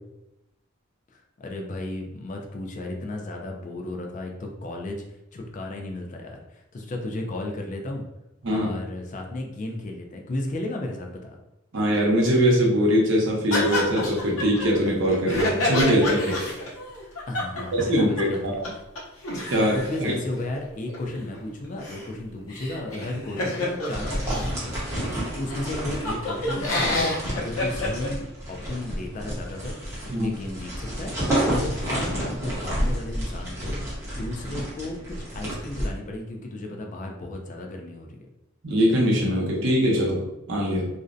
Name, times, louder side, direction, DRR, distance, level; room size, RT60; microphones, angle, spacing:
voice 1, 1.1-5.0 5.3-8.1 8.5-11.4 17.3-18.8 19.5-25.0 25.3-31.1 31.5-38.3, left 1 dB, 40° left, 2 dB, 0.3 m, -34 dB
voice 2, 11.7-16.4 17.7-18.6 19.5-19.7 20.0-20.1 30.1-30.3 38.6-40.9, equal, 60° right, -2 dB, 0.7 m, -22 dB
sound 1, 13.5-18.4 18.6-18.7 19.0-24.6 25.2-25.3 25.5-28.1, left 1 dB, 90° left, 0.6 m, -29 dB
sound 2, 23.9-35.9, equal, 15° right, 0.8 m, -30 dB
2.5 x 2.0 x 2.5 m, 0.91 s
head